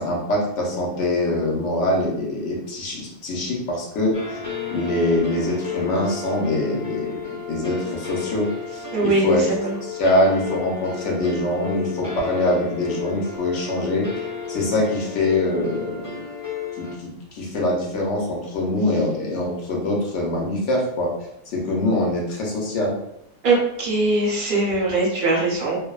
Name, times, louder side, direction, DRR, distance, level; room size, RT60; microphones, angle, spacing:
voice 1, 0.0-3.0 3.2-4.4 4.7-7.1 7.5-9.5 9.8-16.2 16.8-17.1 17.3-21.1 21.5-22.9, left 1 dB, 60° left, -2 dB, 0.9 m, -23 dB
sound 1, 4.1-16.9, left 6 dB, 30° left, 0.6 m, -33 dB
voice 2, 8.9-9.8 23.4-25.8, right 2 dB, 50° right, -4 dB, 0.6 m, -21 dB
2.5 x 2.1 x 2.3 m, 0.77 s
omnidirectional pair, 1.5 m